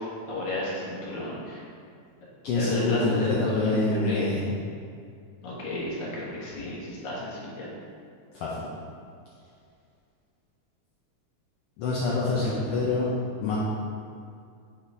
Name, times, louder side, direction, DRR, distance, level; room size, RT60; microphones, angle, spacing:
voice 1, 0.3-1.6 2.6-4.4 5.4-7.7 12.2-12.5, left 1 dB, 45° left, -6 dB, 1.8 m, -32 dB
voice 2, 2.4-4.5 8.3-8.7 11.8-13.1 13.4-13.6, left 3 dB, 70° left, -6 dB, 1.5 m, -26 dB
6.7 x 3.8 x 4.7 m, 2.3 s
omnidirectional pair, 3.4 m